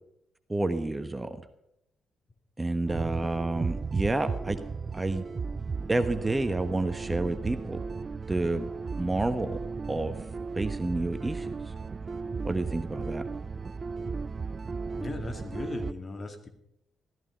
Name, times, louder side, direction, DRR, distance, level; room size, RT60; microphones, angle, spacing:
voice 1, 0.5-1.4 2.6-4.6 4.9-5.3 5.9-7.8 8.3-8.6 9.0-9.6 9.9-10.1 10.5-11.5 12.4-13.2, right 2 dB, 20° right, 10 dB, 1.2 m, -29 dB
sound 1, 2.9-15.9, right 4 dB, 40° right, 0.5 m, -35 dB
voice 2, 15.0-16.5, left 3 dB, 35° left, 7 dB, 2.2 m, -38 dB
14.5 x 14.0 x 5.4 m, 0.79 s
hypercardioid pair, 40°, 0 cm